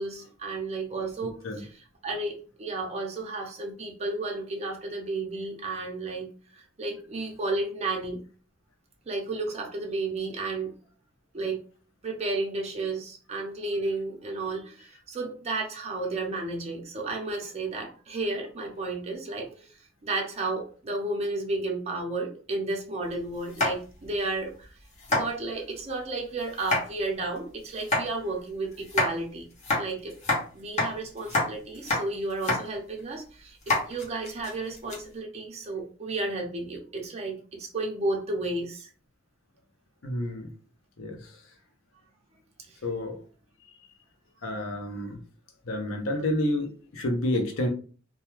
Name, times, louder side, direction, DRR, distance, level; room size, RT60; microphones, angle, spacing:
voice 1, 0.0-6.3 6.5-8.2 9.1-10.7 11.3-11.6 12.0-24.7 25.1-29.5 29.8-30.2 30.5-38.9 42.7-42.8, right 2 dB, 35° right, 0.6 m, -32 dB
sound 1, 23.5-24.1 24.5-24.6 25.0-25.2 26.5-26.8 27.7-28.0 28.8-29.1 29.6-30.4 30.8-30.9 31.2-31.5 31.7-32.0 32.3-32.6 33.0-33.1 33.6-35.0, left 2 dB, 35° left, 0.8 m, -27 dB
voice 2, 40.0-40.5 41.0-41.2 42.8-43.2 44.4-45.2 45.7-47.7, left 1 dB, 80° left, 0.7 m, -29 dB
2.2 x 2.2 x 3.0 m
head